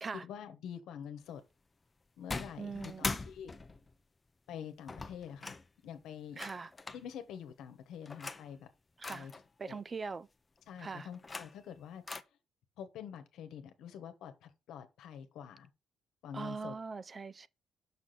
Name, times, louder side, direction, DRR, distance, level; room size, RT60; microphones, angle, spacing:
voice 1, 0.1-1.4 2.2-3.5 4.5-5.5 5.8-6.4 6.9-8.7 9.1-9.3 9.7-9.8 10.7-12.0 12.8-15.7 16.2-16.8, left 8 dB, 80° left, 1.1 m, -46 dB
sound 1, 2.3-3.9 4.9-5.7 6.4-7.0 8.1-8.5 9.0-9.4 11.0-11.7 12.1-12.2, left 3 dB, 25° left, 0.7 m, -41 dB
voice 2, 2.6-3.2 6.4-6.7 9.0-9.3 9.6-10.3 10.8-11.1 16.3-17.5, right 4 dB, 35° right, 0.4 m, -41 dB
6.0 x 5.9 x 4.1 m
cardioid pair, 90°, 0 cm